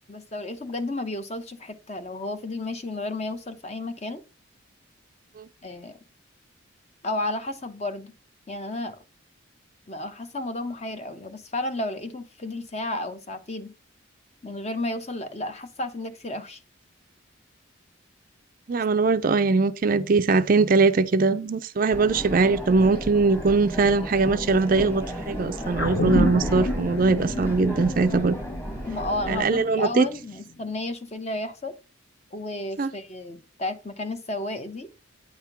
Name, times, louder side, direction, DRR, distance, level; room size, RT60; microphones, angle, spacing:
voice 1, 0.1-4.2 5.6-6.0 7.0-8.1 8.5-9.0 9.9-13.7 14.4-16.6 28.9-31.7 32.3-34.9, left 2 dB, 30° left, 0.8 m, -32 dB
voice 2, 18.7-28.4 29.3-30.1 32.8-32.9, right 4 dB, 40° right, 0.4 m, -21 dB
sound 1, 21.9-29.4, equal, 10° left, 1.4 m, -34 dB
sound 2, 25.8-30.4 30.7-30.8, left 1 dB, 75° left, 1.4 m, -29 dB
9.0 x 3.5 x 5.7 m
head